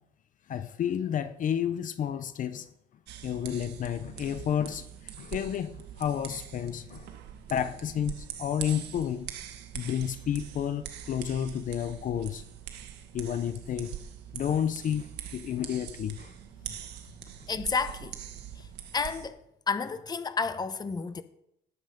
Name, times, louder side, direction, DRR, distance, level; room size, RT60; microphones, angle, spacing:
voice 1, 0.5-2.7 3.2-7.1 7.5-9.3 9.7-12.4 13.1-14.0 14.3-15.1 15.3-16.3, left 9 dB, 50° left, 0.8 m, -31 dB
sound 1, 3.1-19.3, right 11 dB, 80° right, 1.8 m, -43 dB
voice 2, 17.5-18.2 18.6-18.7 18.9-19.4 19.7-21.2, left 5 dB, 25° left, 1.0 m, -31 dB
19.0 x 8.1 x 5.3 m
cardioid pair, 110°, 17 cm